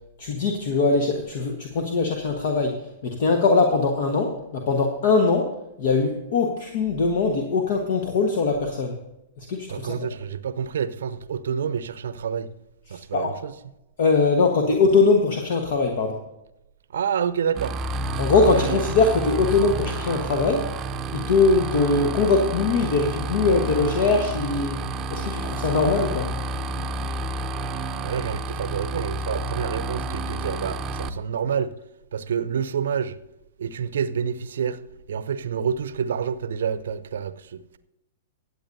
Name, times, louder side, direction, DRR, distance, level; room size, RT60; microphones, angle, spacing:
voice 1, 0.2-5.5 5.8-8.9 9.5-10.1 13.1-13.3 14.0-16.2 18.2-20.7 21.1-24.8 25.1-26.3, left 4 dB, 55° left, 1.3 m, -21 dB
voice 2, 9.7-12.5 12.9-13.5 16.9-17.7 18.4-18.8 28.0-31.7 32.1-33.2 33.6-34.8 35.1-37.6, right 7 dB, 65° right, 0.7 m, -28 dB
sound 1, 17.6-31.1, right 2 dB, 25° right, 0.7 m, -30 dB
23.5 x 8.4 x 2.7 m
figure-of-eight pair, 105°, 0 cm